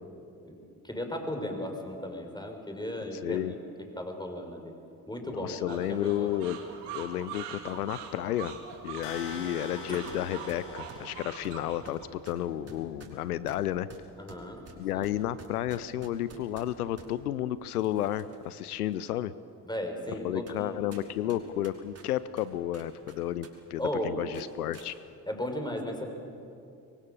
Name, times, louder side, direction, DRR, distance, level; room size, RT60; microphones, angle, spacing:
voice 1, 0.8-3.5 3.9-4.7 5.1-6.4 14.2-14.6 14.9-15.0 19.6-20.8 23.8-24.2 25.3-26.1, left 1 dB, 10° left, 4 dB, 5.7 m, -35 dB
voice 2, 3.1-3.5 5.3-6.6 6.9-8.5 8.8-13.9 14.8-19.3 20.2-24.9, left 12 dB, 85° left, 16 dB, 0.6 m, -32 dB
sound 1, 5.7-12.1, right 7 dB, 65° right, 2.9 m, -43 dB
sound 2, 9.0-11.9, left 2 dB, 60° left, 4.7 m, -44 dB
sound 3, 10.1-10.2 10.5-17.1 17.7-18.5 18.9-19.0 19.7-19.8 20.5-20.6 20.9-23.5 23.8-23.9 24.3-24.9, right 4 dB, 35° right, 5.1 m, -51 dB
25.5 x 23.5 x 7.1 m, 2.6 s
figure-of-eight pair, 45°, 44 cm